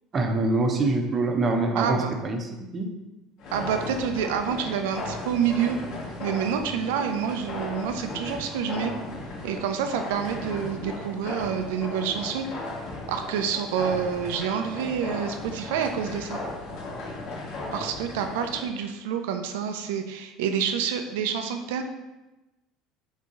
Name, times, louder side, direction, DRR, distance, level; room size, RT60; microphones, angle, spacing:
voice 1, 0.1-2.9, right 2 dB, 35° right, 4 dB, 0.7 m, -25 dB
voice 2, 1.7-2.1 3.5-5.8 6.2-8.9 9.4-12.5 13.1-16.4 17.7-21.8, right 7 dB, 80° right, 6 dB, 0.5 m, -28 dB
sound 1, 3.4-18.7, left 2 dB, 65° left, 1.3 m, -36 dB
3.9 x 3.5 x 3.8 m, 1.0 s
supercardioid pair, 85°, 0 cm